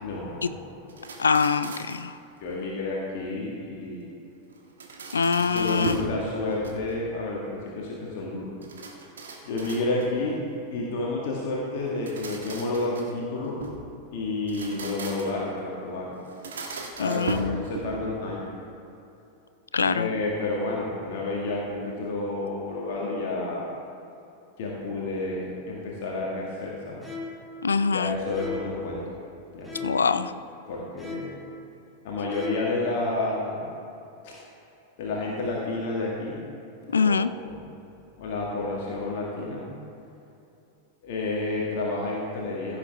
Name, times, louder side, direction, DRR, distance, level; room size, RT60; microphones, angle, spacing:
voice 1, 0.0-1.1 2.4-4.1 5.5-8.5 9.4-10.4 10.7-13.6 14.1-16.2 17.0-18.5 19.9-23.7 24.6-27.1 27.7-29.0 29.5-29.9 30.7-31.4 32.0-33.7 34.2-34.3 35.0-36.4 36.9-37.7 38.2-39.7 41.0-42.8, left 2 dB, 50° left, -3 dB, 1.7 m, -30 dB
sound 1, 0.9-2.1 4.5-6.2 6.5-7.1 8.6-10.2 11.8-13.9 14.4-15.5 16.3-18.1, right 3 dB, 65° right, 1.3 m, -37 dB
voice 2, 1.2-2.1 5.1-6.1 17.0-17.6 19.7-20.1 27.6-28.2 29.8-30.3 36.9-37.3, left 5 dB, 75° left, 13 dB, 0.4 m, -24 dB
sound 2, 27.0-27.5 28.3-28.8 29.6-30.2 31.0-31.5 32.3-32.8, left 4 dB, ahead, 1.7 m, -37 dB
15.5 x 7.4 x 3.5 m, 2.8 s
figure-of-eight pair, 90°, 0 cm